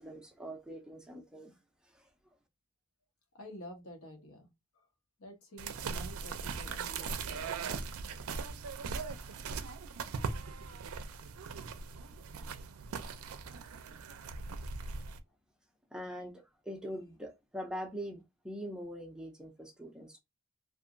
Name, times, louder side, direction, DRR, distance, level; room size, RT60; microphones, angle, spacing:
voice 1, 0.0-1.5 1.8-2.1 15.9-20.2, equal, 5° right, 0.4 m, -43 dB
voice 2, 3.3-4.5 4.7-4.9 5.2-7.6, equal, 70° left, 1.1 m, -50 dB
sound 1, 5.6-15.2, right 5 dB, 70° right, 0.4 m, -40 dB
2.9 x 2.4 x 2.5 m
head